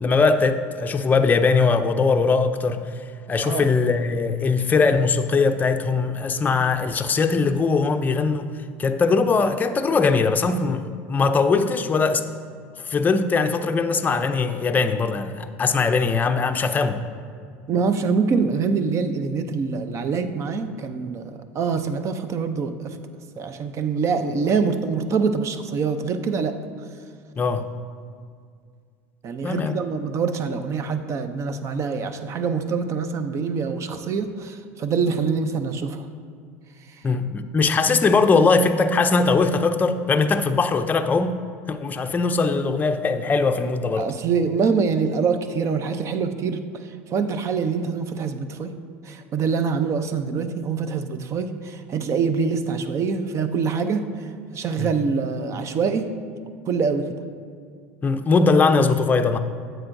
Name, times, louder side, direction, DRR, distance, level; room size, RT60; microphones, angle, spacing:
voice 1, 0.0-2.8 3.3-8.5 8.8-12.2 12.8-17.0 27.4-27.7 29.4-29.7 37.0-41.3 41.7-44.1 54.8-54.9 58.0-59.4, left 4 dB, 25° left, 7 dB, 0.5 m, -20 dB
voice 2, 17.7-23.0 23.4-26.5 29.2-36.1 44.0-48.7 49.0-54.3 54.5-56.1 56.7-57.2, right 5 dB, 40° right, 9 dB, 0.6 m, -25 dB
9.4 x 7.7 x 2.6 m, 2.1 s
supercardioid pair, 95°, 7 cm